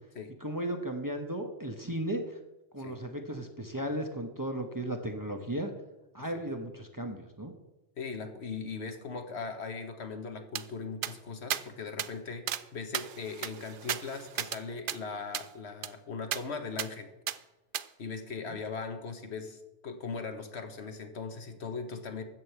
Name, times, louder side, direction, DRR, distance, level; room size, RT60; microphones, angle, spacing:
voice 1, 0.4-2.2 2.7-5.7 6.1-7.5 18.5-18.6, right 1 dB, 20° right, 4 dB, 1.1 m, -35 dB
voice 2, 8.0-17.1 18.0-22.2, left 4 dB, 70° left, 6 dB, 1.5 m, -39 dB
sound 1, 10.6-10.7 11.0-11.1 11.5-11.6 12.0-12.1 12.5-12.6 12.9-14.6 14.9-15.0 15.3-15.5 15.8-15.9 16.3-16.4 16.8-16.9 17.3-17.4 17.7-17.9, right 10 dB, 60° right, 0.6 m, -34 dB
13.5 x 5.4 x 8.0 m, 1.0 s
omnidirectional pair, 1.2 m